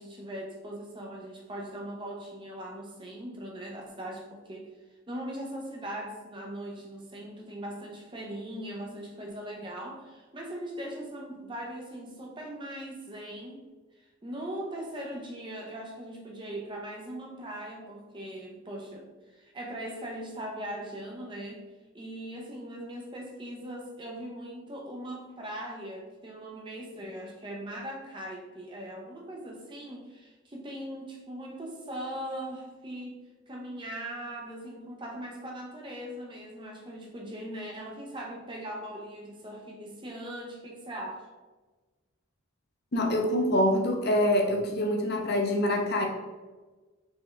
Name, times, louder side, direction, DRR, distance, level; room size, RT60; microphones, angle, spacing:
voice 1, 0.0-4.7 5.1-13.6 14.2-19.1 19.3-21.6 21.9-33.2 33.5-41.2, right 1 dB, 25° right, -1 dB, 0.6 m, -40 dB
voice 2, 42.9-46.1, left 1 dB, 50° left, 1 dB, 0.8 m, -25 dB
4.4 x 3.4 x 3.4 m, 1.2 s
head